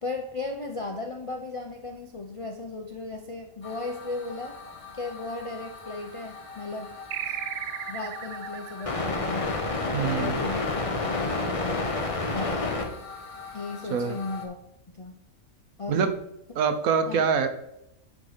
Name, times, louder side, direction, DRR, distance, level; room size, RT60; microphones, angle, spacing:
voice 1, 0.0-4.6 4.9-7.0 7.3-7.4 7.9-9.6 10.1-11.9 12.3-13.0 13.5-14.6 14.9-15.1 15.8-16.0 17.1-17.2, left 3 dB, 50° left, 3 dB, 0.4 m, -36 dB
sound 1, 3.6-14.5, left 3 dB, 25° left, 0.9 m, -32 dB
sound 2, 7.1-10.1, right 9 dB, 65° right, 0.7 m, -36 dB
voice 2, 9.9-10.4 13.9-14.2 15.9-16.1 16.5-17.5, right 6 dB, 80° right, 9 dB, 1.3 m, -24 dB
8.6 x 4.0 x 5.0 m, 0.79 s
omnidirectional pair, 1.5 m